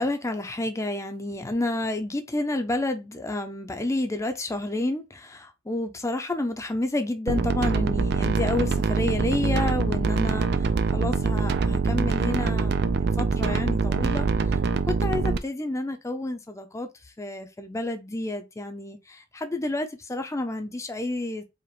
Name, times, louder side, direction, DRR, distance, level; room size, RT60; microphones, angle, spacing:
voice 1, 0.0-10.5 10.9-14.3 14.9-16.9 17.2-21.4, left 2 dB, 15° left, 0.6 m, -30 dB
sound 1, 7.3-15.4, right 4 dB, 60° right, 0.4 m, -24 dB
4.9 x 2.5 x 3.0 m
head